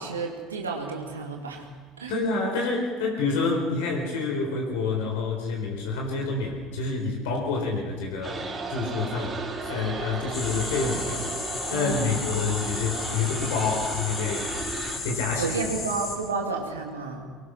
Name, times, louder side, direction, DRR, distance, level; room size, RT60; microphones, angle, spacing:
voice 1, 0.0-1.7 2.0-2.1 11.7-12.1 15.4-17.2, right 4 dB, 80° right, 0 dB, 2.6 m, -31 dB
voice 2, 2.1-14.5 15.0-15.5, left 4 dB, 65° left, 1 dB, 4.2 m, -28 dB
sound 1, 8.2-15.0, right 3 dB, 20° right, 5.2 m, -35 dB
sound 2, 10.3-16.2, left 4 dB, 35° left, 7.1 m, -34 dB
24.5 x 20.5 x 5.9 m, 1.5 s
figure-of-eight pair, 65°, 0 cm